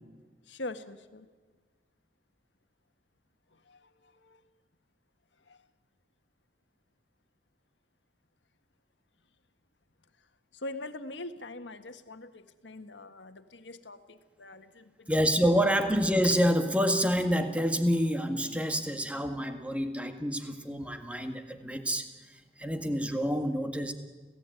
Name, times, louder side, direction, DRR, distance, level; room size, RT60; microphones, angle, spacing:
voice 1, 0.5-1.3 3.5-4.4 5.4-5.6 10.5-15.1, left 2 dB, 80° left, 8 dB, 1.6 m, -43 dB
voice 2, 15.1-23.9, equal, 5° right, 6 dB, 1.7 m, -28 dB
28.0 x 17.0 x 9.2 m, 1.4 s
head